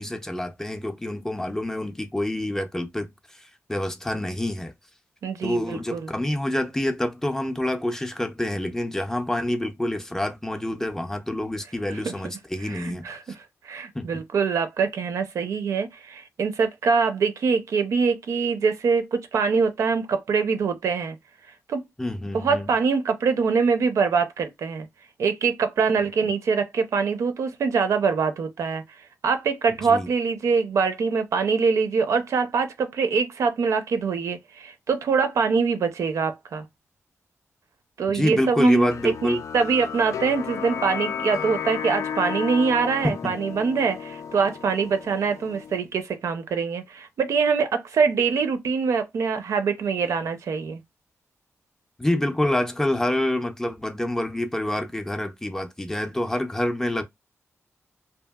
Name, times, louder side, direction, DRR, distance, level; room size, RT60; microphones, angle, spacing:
voice 1, 0.0-3.4 3.7-4.7 5.4-13.1 13.9-14.1 22.0-22.7 29.7-30.1 38.1-39.4 43.0-43.3 52.0-57.0, left 1 dB, 10° left, 0.4 m, -27 dB
voice 2, 5.2-6.1 11.9-12.1 12.6-13.2 13.6-21.2 21.7-21.8 22.3-24.9 25.2-28.8 29.2-36.7 38.0-50.8, right 5 dB, 75° right, 0.5 m, -24 dB
sound 1, 38.9-45.8, left 7 dB, 75° left, 0.4 m, -33 dB
2.7 x 2.5 x 2.2 m
wide cardioid pair, 145°, 5 cm